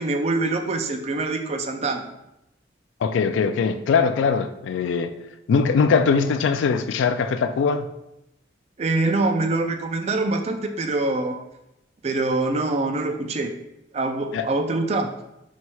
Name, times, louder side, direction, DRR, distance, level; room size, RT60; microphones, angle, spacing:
voice 1, 0.0-2.1 8.8-11.4 12.0-13.5 13.9-15.1, right 2 dB, 35° right, 0.4 m, -24 dB
voice 2, 3.0-5.1 5.5-7.9 14.3-14.5, left 5 dB, 85° left, 0.3 m, -21 dB
4.5 x 4.2 x 2.3 m
head